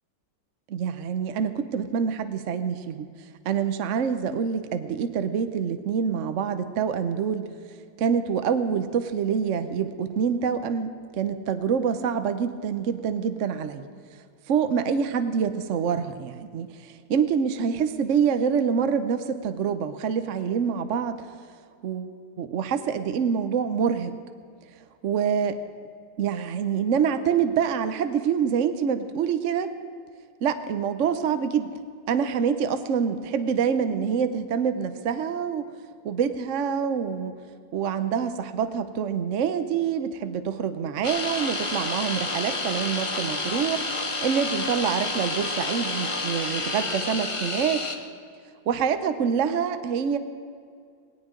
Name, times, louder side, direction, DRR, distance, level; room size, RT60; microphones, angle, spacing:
voice 1, 0.7-3.1 3.4-7.5 8.0-13.8 14.5-21.3 21.8-24.1 25.0-25.5 26.2-29.7 30.4-31.7 32.1-35.7 36.0-37.3 37.7-47.8 48.7-50.2, right 7 dB, 65° right, 9 dB, 0.7 m, -26 dB
sound 1, 41.0-48.0, left 2 dB, 35° left, 0.4 m, -29 dB
19.0 x 18.0 x 3.8 m, 2.3 s
omnidirectional pair, 2.1 m